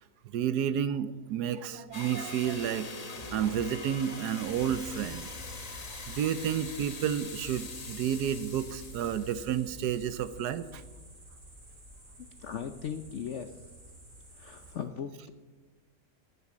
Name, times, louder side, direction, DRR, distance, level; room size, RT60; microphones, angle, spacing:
voice 1, 0.3-2.9 3.3-5.3 6.1-10.8, right 9 dB, 70° right, 14 dB, 1.1 m, -31 dB
sound 1, 1.9-10.2, left 3 dB, 30° left, 0.8 m, -43 dB
sound 2, 4.4-14.8, right 1 dB, 45° right, 3.8 m, -50 dB
voice 2, 12.2-13.7 14.3-15.3, left 8 dB, 70° left, 8 dB, 0.7 m, -38 dB
12.5 x 7.0 x 8.7 m, 1.3 s
omnidirectional pair, 1.9 m